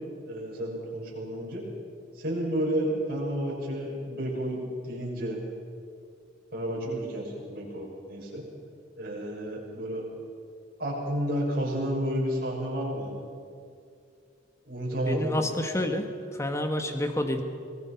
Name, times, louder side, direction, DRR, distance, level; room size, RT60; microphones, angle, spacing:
voice 1, 0.3-1.6 2.1-5.4 6.5-8.4 9.0-10.0 10.8-13.2 14.6-15.4, equal, 55° right, -4 dB, 6.4 m, -31 dB
voice 2, 15.1-17.4, left 1 dB, 15° left, 5 dB, 1.7 m, -29 dB
25.0 x 19.0 x 5.9 m, 2.3 s
head